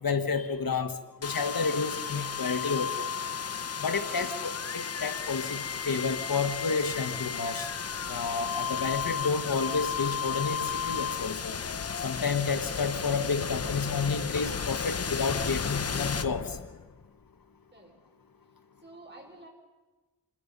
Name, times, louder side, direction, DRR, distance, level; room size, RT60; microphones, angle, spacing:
voice 1, 0.0-0.9 1.2-3.1 3.8-7.7 8.1-11.5 12.0-16.6, left 5 dB, 65° left, 9 dB, 1.5 m, -30 dB
sound 1, 1.2-17.1, left 6 dB, 40° left, 0.7 m, -33 dB
voice 2, 18.8-19.5, right 2 dB, 30° right, 2 dB, 5.6 m, -50 dB
28.0 x 21.5 x 5.4 m, 1.2 s
wide cardioid pair, 75°, 38 cm